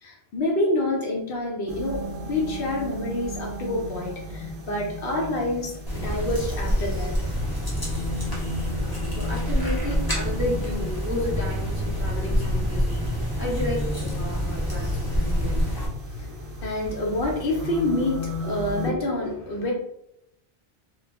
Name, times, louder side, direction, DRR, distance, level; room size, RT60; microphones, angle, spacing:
voice 1, 0.0-7.1 13.3-13.4 15.5-15.6 16.1-19.7, left 1 dB, 65° left, 0 dB, 0.8 m, -28 dB
sound 1, 1.7-18.9, left 2 dB, 70° right, 0.8 m, -34 dB
sound 2, 5.9-15.9, equal, 25° left, 0.8 m, -27 dB
voice 2, 8.6-15.7, left 1 dB, 15° right, -7 dB, 0.6 m, -32 dB
2.2 x 2.0 x 3.4 m, 0.80 s
omnidirectional pair, 1.1 m